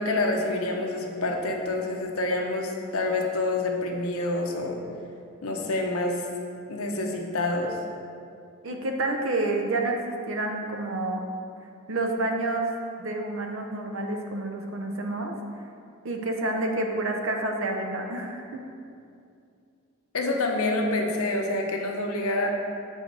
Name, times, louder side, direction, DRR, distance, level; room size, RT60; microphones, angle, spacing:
voice 1, 0.0-4.8 5.4-6.2 6.7-7.8 20.1-22.5, left 2 dB, 75° left, 1 dB, 0.8 m, -27 dB
voice 2, 8.6-11.2 11.9-12.7 13.0-15.3 16.0-18.6, right 2 dB, 60° right, 3 dB, 0.7 m, -29 dB
7.4 x 4.9 x 4.0 m, 2.5 s
head